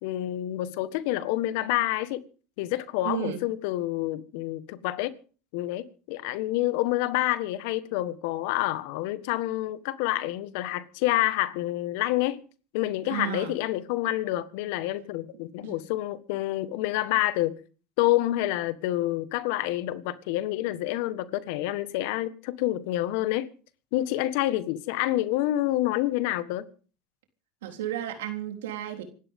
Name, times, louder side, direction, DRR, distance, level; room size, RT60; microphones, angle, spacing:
voice 1, 0.0-2.2 2.6-5.1 5.5-12.4 12.7-17.6 18.0-23.5 23.9-26.6, left 15 dB, 75° left, 1.5 m, -28 dB
voice 2, 3.0-3.4 13.1-13.5 15.6-15.8 27.6-29.0, right 12 dB, 85° right, 3.7 m, -33 dB
26.0 x 12.5 x 3.7 m
hypercardioid pair, 90°, 0 cm